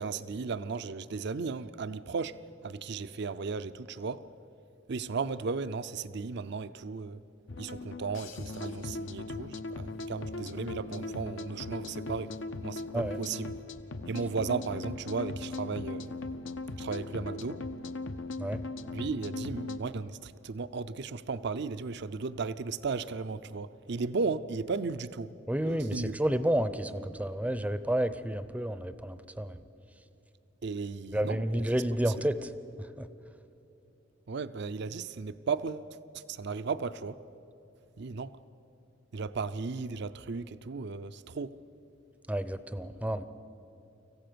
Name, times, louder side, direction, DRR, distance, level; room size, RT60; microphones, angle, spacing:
voice 1, 0.0-2.3 2.6-4.2 4.9-7.2 7.6-12.3 12.6-13.5 14.1-16.1 16.8-17.6 18.9-25.3 25.7-26.2 30.6-31.8 32.2-32.3 34.3-35.9 36.3-37.2 38.0-38.4 39.1-41.5, right 4 dB, 60° right, 0.5 m, -35 dB
sound 1, 7.5-19.8, left 2 dB, 75° left, 0.8 m, -39 dB
voice 2, 25.5-29.6 31.1-32.5 33.0-33.1 42.3-43.2, right 1 dB, 5° right, 0.6 m, -30 dB
25.5 x 15.0 x 6.8 m
head